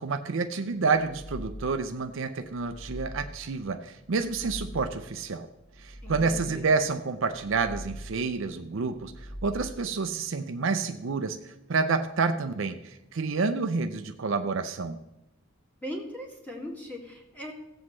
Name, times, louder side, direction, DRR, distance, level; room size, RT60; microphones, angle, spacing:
voice 1, 0.0-5.5 5.8-15.0, right 4 dB, 60° right, 8 dB, 0.5 m, -29 dB
sound 1, 0.8-1.9 2.4-3.5 4.0-5.1 5.6-6.7 7.2-8.3 8.8-9.9, equal, 40° left, 3.5 m, -42 dB
voice 2, 6.0-6.6 15.8-17.5, equal, 10° left, -2 dB, 1.9 m, -39 dB
17.0 x 7.9 x 3.1 m, 0.93 s
head